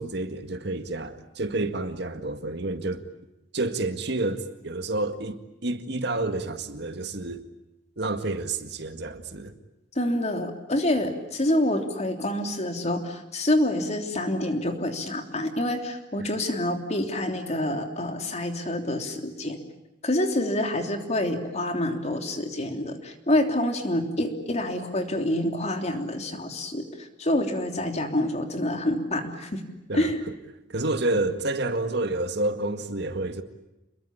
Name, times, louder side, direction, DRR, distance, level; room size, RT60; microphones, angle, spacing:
voice 1, 0.0-3.0 3.5-7.4 8.0-9.5 16.2-16.3 29.9-30.1 30.7-33.4, right 2 dB, 65° right, 2.0 m, -29 dB
voice 2, 9.9-19.6 20.0-29.6 29.9-30.2, left 1 dB, 40° left, 3.3 m, -27 dB
29.0 x 22.0 x 8.6 m
head